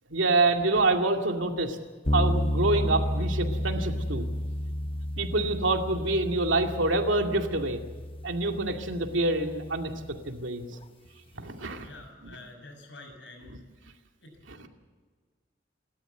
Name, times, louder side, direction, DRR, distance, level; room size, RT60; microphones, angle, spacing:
voice 1, 0.1-1.8 2.1-4.2 5.2-7.8 8.2-10.7 11.4-11.9 12.2-12.4 13.5-13.6 14.5-14.7, right 2 dB, 85° right, 4 dB, 2.4 m, -27 dB
sound 1, 2.1-10.2, equal, 30° left, 0.9 m, -31 dB
voice 2, 11.8-13.5 14.2-14.3, left 2 dB, 70° left, 5 dB, 5.9 m, -47 dB
28.5 x 13.0 x 8.1 m, 1.5 s
head